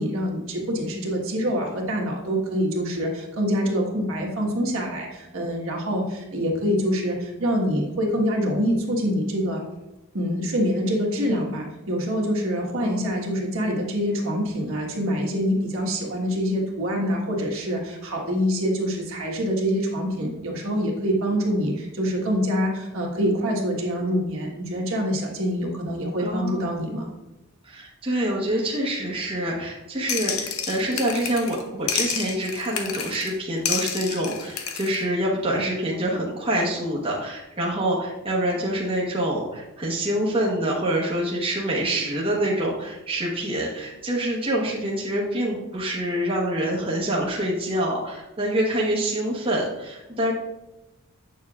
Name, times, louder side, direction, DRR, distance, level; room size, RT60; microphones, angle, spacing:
voice 1, 0.0-9.6 10.1-27.1, equal, 65° right, -1 dB, 1.4 m, -25 dB
voice 2, 12.8-13.2 26.2-26.6 27.6-50.3, right 1 dB, 25° right, -4 dB, 1.0 m, -26 dB
sound 1, 30.1-31.6 31.9-33.3 33.7-35.0, left 7 dB, 70° left, 0.7 m, -29 dB
8.3 x 6.7 x 2.4 m, 0.98 s
head